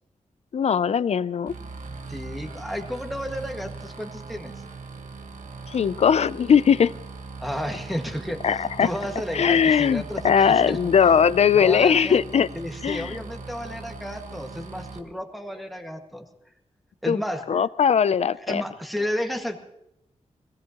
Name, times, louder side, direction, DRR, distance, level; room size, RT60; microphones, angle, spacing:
voice 1, 0.5-1.5 5.7-6.9 8.4-8.9 9.3-12.5 12.8-13.2 17.1-17.2 17.5-18.6, left 7 dB, 60° left, 18 dB, 0.5 m, -20 dB
sound 1, 1.5-15.0, right 4 dB, 85° right, 1.4 m, -40 dB
voice 2, 2.1-4.5 7.4-8.4 8.8-10.8 11.5-16.3 17.0-17.4 18.4-19.6, equal, ahead, 2 dB, 1.8 m, -32 dB
21.5 x 17.0 x 3.0 m, 0.83 s
wide cardioid pair, 125°, 12 cm